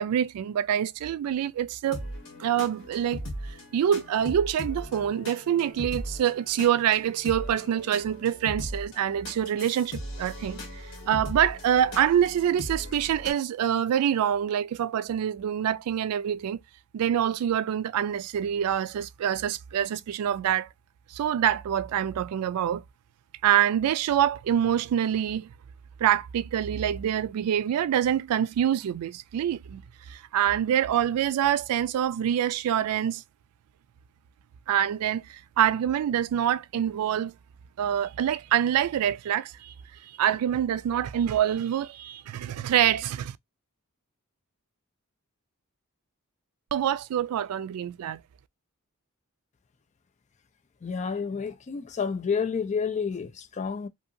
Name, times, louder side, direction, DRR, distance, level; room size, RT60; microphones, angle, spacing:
voice 1, 0.0-2.0 2.4-16.6 16.9-20.7 21.1-22.8 23.4-25.5 26.0-29.8 30.1-33.2 34.7-37.3 37.8-39.7 40.0-43.4 46.7-48.2, right 10 dB, 90° right, 0.3 m, -26 dB
sound 1, 1.9-13.3, left 1 dB, 60° left, 1.2 m, -39 dB
voice 2, 50.8-53.9, left 5 dB, 35° left, 0.4 m, -30 dB
2.7 x 2.7 x 2.5 m
head